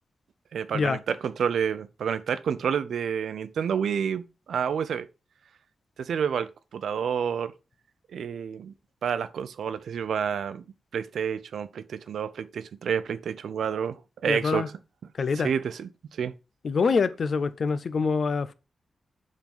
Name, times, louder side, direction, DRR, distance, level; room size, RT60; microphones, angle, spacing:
voice 1, 0.5-4.2 4.5-5.1 6.0-7.5 8.1-8.7 9.0-10.6 10.9-14.7 15.4-16.3, right 7 dB, 85° right, 0.6 m, -29 dB
voice 2, 14.3-14.7 15.2-15.5 16.6-18.5, left 5 dB, 55° left, 0.6 m, -25 dB
7.4 x 3.9 x 5.4 m
wide cardioid pair, 120°, 0 cm